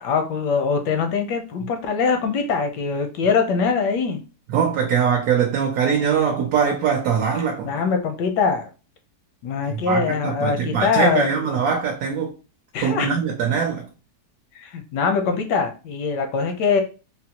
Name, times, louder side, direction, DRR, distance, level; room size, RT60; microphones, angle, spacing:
voice 1, 0.0-4.2 7.6-8.7 9.4-11.3 12.7-13.1 14.6-16.8, left 5 dB, 85° left, 1.3 m, -22 dB
voice 2, 4.5-7.7 9.7-12.3 12.8-13.9, right 7 dB, 70° right, 1.0 m, -22 dB
3.9 x 2.0 x 2.8 m
omnidirectional pair, 1.8 m